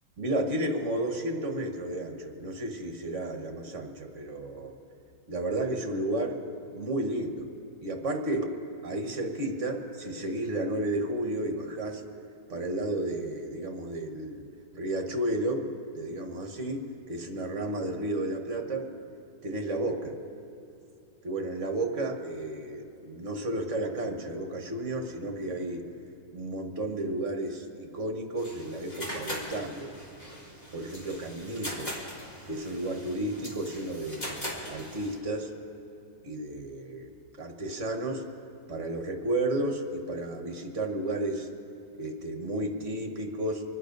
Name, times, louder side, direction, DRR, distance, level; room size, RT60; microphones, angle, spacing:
voice 1, 0.2-4.7 5.3-6.4 6.7-7.5 7.8-8.5 8.8-12.0 12.5-14.4 14.7-15.7 15.9-18.9 19.4-20.1 21.2-25.8 26.3-29.9 30.7-31.9 32.5-35.5 36.2-37.1 37.4-38.2 38.7-41.5 41.9-43.6, right 1 dB, 50° right, 4 dB, 1.6 m, -32 dB
sound 1, 28.4-35.2, equal, 25° left, 2.9 m, -40 dB
25.5 x 9.8 x 5.3 m, 2.8 s
omnidirectional pair, 1.8 m